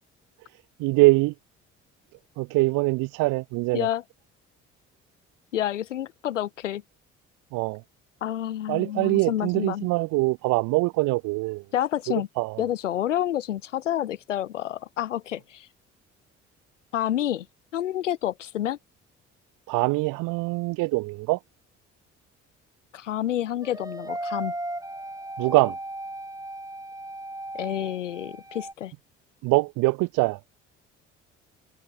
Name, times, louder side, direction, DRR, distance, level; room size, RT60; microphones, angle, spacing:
voice 1, 0.8-1.3 2.4-3.9 7.5-7.8 8.7-11.6 12.4-12.6 19.7-21.4 25.4-25.8 29.4-30.4, right 24 dB, 60° right, 1.2 m, -23 dB
voice 2, 3.7-4.0 5.5-6.8 8.2-9.9 11.7-12.3 12.6-15.7 16.9-17.5 17.7-18.8 22.9-24.5 27.5-28.9, left 11 dB, 80° left, 0.9 m, -29 dB
sound 1, 23.6-28.7, right 1 dB, 10° right, 7.9 m, -36 dB
figure-of-eight pair, 50°, 36 cm